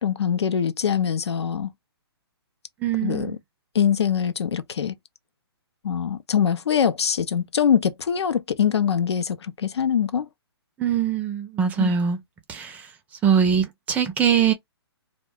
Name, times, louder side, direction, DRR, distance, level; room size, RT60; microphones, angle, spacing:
voice 1, 0.0-1.7 3.0-3.3 3.7-4.9 5.8-10.3 11.8-11.9, left 8 dB, 80° left, 0.5 m, -23 dB
voice 2, 2.8-3.4 10.8-12.2 12.5-12.9 13.2-14.5, right 7 dB, 10° right, 0.4 m, -22 dB
2.4 x 2.2 x 3.4 m
hypercardioid pair, 150°, 14 cm